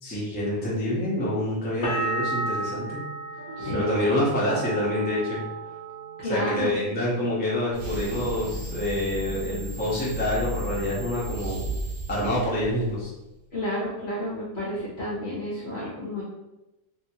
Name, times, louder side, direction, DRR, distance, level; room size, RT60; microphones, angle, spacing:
voice 1, 0.0-3.0 3.7-5.4 6.3-11.6 12.1-13.1, left 1 dB, 15° left, -7 dB, 0.4 m, -27 dB
sound 1, 1.8-7.5 7.8-8.5, right 3 dB, 80° left, 0.4 m, -34 dB
sound 2, 3.4-6.4, left 1 dB, 65° right, 0.9 m, -42 dB
voice 2, 3.6-3.9 6.2-6.7 13.5-16.2, equal, 55° left, -6 dB, 0.7 m, -31 dB
sound 3, 7.7-13.2, right 1 dB, 90° right, 0.5 m, -34 dB
3.0 x 2.8 x 2.8 m, 0.98 s
omnidirectional pair, 1.9 m